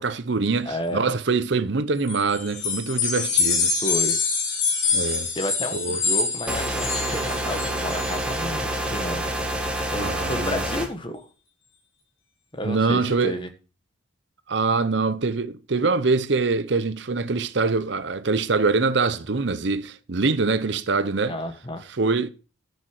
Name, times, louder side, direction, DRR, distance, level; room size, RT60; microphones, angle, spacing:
voice 1, 0.0-3.7 4.9-5.3 5.7-6.0 9.9-10.6 12.6-13.4 14.5-21.4 21.9-22.3, right 4 dB, 60° right, 0.7 m, -24 dB
voice 2, 0.6-1.1 3.8-4.2 5.3-9.2 9.9-11.3 12.5-13.5 21.3-21.8, equal, 25° left, 1.5 m, -31 dB
sound 1, 2.0-8.2, left 5 dB, 70° left, 3.6 m, -25 dB
sound 2, 6.5-10.9, right 1 dB, 5° right, 1.8 m, -27 dB
11.0 x 6.5 x 6.3 m
head